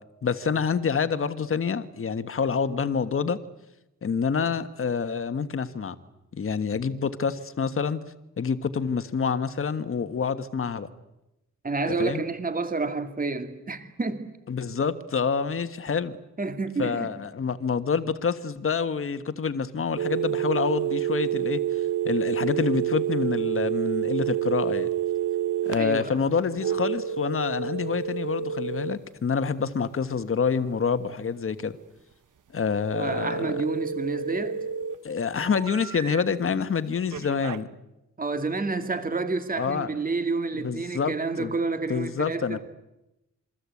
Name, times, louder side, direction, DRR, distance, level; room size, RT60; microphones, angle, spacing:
voice 1, 0.2-3.4 4.0-5.9 6.3-8.0 8.4-10.9 12.0-12.2 14.5-16.2 16.8-21.6 22.0-24.9 25.6-31.8 32.5-33.5 35.0-37.7 39.6-39.9 40.6-41.5 41.9-42.6, left 6 dB, 45° left, 10 dB, 1.5 m, -27 dB
voice 2, 11.6-14.3 16.4-17.1 25.8-26.1 33.0-34.6 38.2-42.6, right 3 dB, 25° right, 8 dB, 2.5 m, -29 dB
sound 1, 20.0-25.8 26.6-28.9 32.9-34.9 35.4-36.2 37.1-37.6, right 10 dB, 75° right, 1.3 m, -29 dB
27.5 x 23.0 x 8.5 m, 0.94 s
wide cardioid pair, 140°, 31 cm